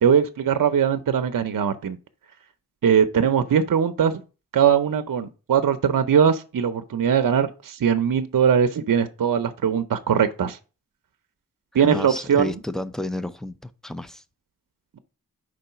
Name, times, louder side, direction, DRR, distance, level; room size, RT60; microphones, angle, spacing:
voice 1, 0.0-2.0 2.8-4.2 4.5-10.6 11.7-12.5, right 7 dB, 60° right, 0.6 m, -20 dB
voice 2, 11.8-14.2, left 1 dB, ahead, 0.4 m, -31 dB
5.1 x 3.8 x 5.5 m
wide cardioid pair, 100°, 36 cm